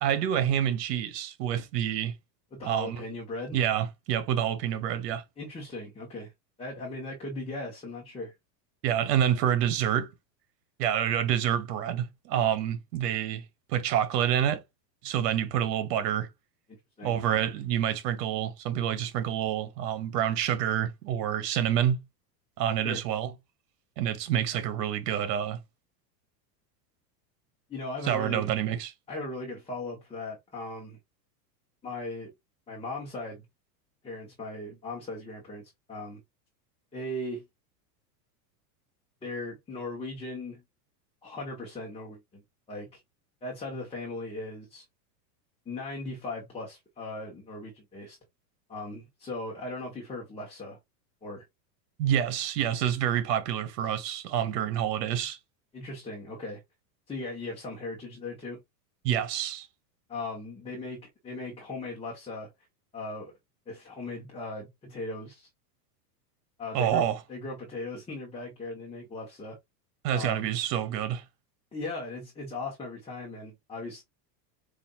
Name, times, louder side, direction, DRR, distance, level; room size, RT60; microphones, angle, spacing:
voice 1, 0.0-2.1 2.6-3.0 3.5-5.2 8.8-10.1 10.8-13.4 13.7-14.6 15.0-16.3 17.0-22.0 22.6-23.3 24.0-25.6 28.0-28.9 52.0-55.4 59.0-59.7 66.7-67.2 70.0-71.2, right 10 dB, 70° right, 1.2 m, -27 dB
voice 2, 2.5-3.6 5.4-6.3 6.6-8.3 17.0-17.1 22.8-23.0 27.7-28.5 29.1-31.0 31.8-32.3 32.7-33.4 34.0-36.2 36.9-37.4 39.2-40.6 41.2-42.4 42.7-43.0 43.4-44.8 45.7-48.2 48.7-50.8 51.2-51.4 55.7-56.6 57.1-58.6 60.1-62.5 62.9-63.3 63.7-65.5 66.6-69.6 70.1-70.5 71.7-74.0, left 2 dB, 10° left, 1.0 m, -38 dB
5.0 x 2.7 x 2.4 m
supercardioid pair, 130°, 49 cm